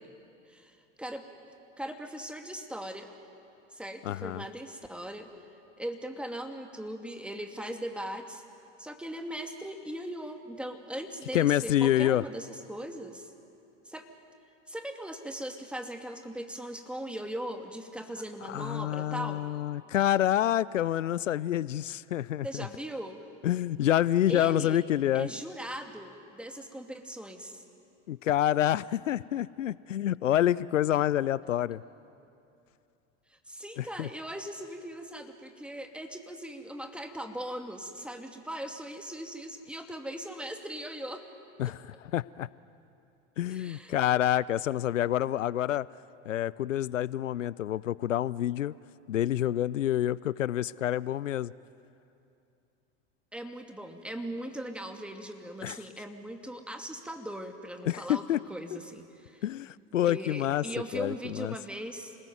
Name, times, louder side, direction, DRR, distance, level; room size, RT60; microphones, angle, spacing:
voice 1, 0.5-1.2 1.8-3.1 3.7-5.3 5.8-8.4 8.8-13.3 13.9-14.1 14.7-19.4 22.4-23.2 24.3-24.8 25.1-27.6 33.3-41.3 41.6-41.7 43.5-44.0 53.3-59.4 60.0-62.2, right 1 dB, 5° right, 5 dB, 2.5 m, -39 dB
voice 2, 4.0-4.4 11.3-12.2 18.5-22.7 23.4-25.3 28.1-31.8 33.8-34.1 41.6-41.8 42.1-42.5 43.4-45.9 46.3-48.7 49.1-51.5 55.6-55.8 57.9-58.4 59.4-60.6 60.9-61.5, left 12 dB, 90° left, 21 dB, 0.5 m, -27 dB
27.5 x 20.0 x 9.4 m, 2.7 s
hypercardioid pair, 85°, 37 cm